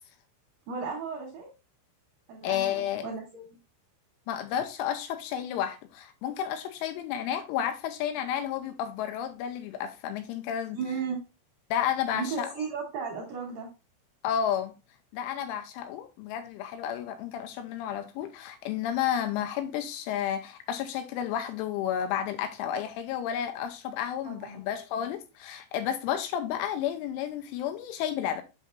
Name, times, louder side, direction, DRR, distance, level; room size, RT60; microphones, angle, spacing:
voice 1, 0.7-1.5 2.3-3.4 10.7-11.2 12.1-13.7 24.3-24.6, right 5 dB, 70° right, 2.2 m, -35 dB
voice 2, 2.4-3.1 4.3-10.8 11.7-12.5 14.2-14.7 15.1-28.4, left 9 dB, 85° left, 3.0 m, -31 dB
7.3 x 5.9 x 2.6 m
omnidirectional pair, 5.9 m